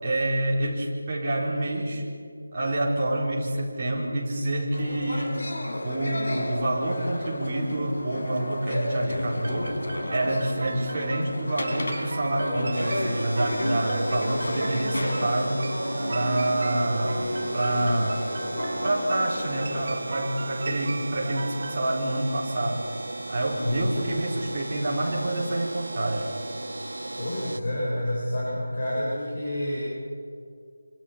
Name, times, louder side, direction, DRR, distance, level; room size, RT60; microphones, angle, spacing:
voice 1, 0.0-2.0 2.5-5.4 5.8-9.8 10.1-15.7 16.1-17.2 17.5-18.3 18.8-22.9 23.3-26.3, right 1 dB, 15° right, -7 dB, 4.5 m, -27 dB
sound 1, 4.7-19.9, left 1 dB, 70° left, 4.4 m, -32 dB
sound 2, 9.4-21.8, right 3 dB, 35° right, 1.2 m, -38 dB
sound 3, 12.7-27.6, right 2 dB, 80° right, 1.7 m, -36 dB
voice 2, 23.6-23.9 27.2-29.8, left 1 dB, 40° left, -6 dB, 6.5 m, -28 dB
26.5 x 26.5 x 5.9 m, 2.2 s
figure-of-eight pair, 180°, 0 cm